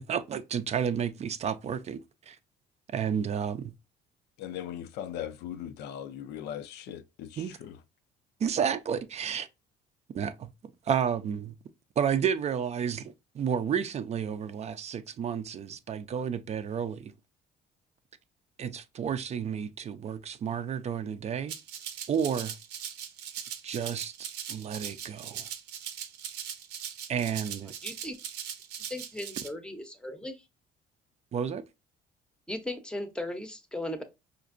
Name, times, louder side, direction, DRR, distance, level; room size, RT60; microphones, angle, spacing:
voice 1, 0.0-2.4 2.9-3.7 7.4-7.5 8.4-9.5 10.1-10.5 10.9-11.5 12.0-17.1 18.6-21.6 22.1-22.5 23.6-24.1 24.5-25.4 27.1-27.7 31.3-31.6, right 7 dB, 40° right, 0.4 m, -31 dB
voice 2, 4.4-7.8, left 10 dB, 80° left, 0.4 m, -39 dB
Rattle (instrument), 21.5-29.5, right 9 dB, 90° right, 0.7 m, -40 dB
voice 3, 27.8-28.1 28.9-30.4 32.5-34.0, left 1 dB, 5° left, 0.7 m, -37 dB
4.9 x 2.5 x 2.4 m
cardioid pair, 110°, 17 cm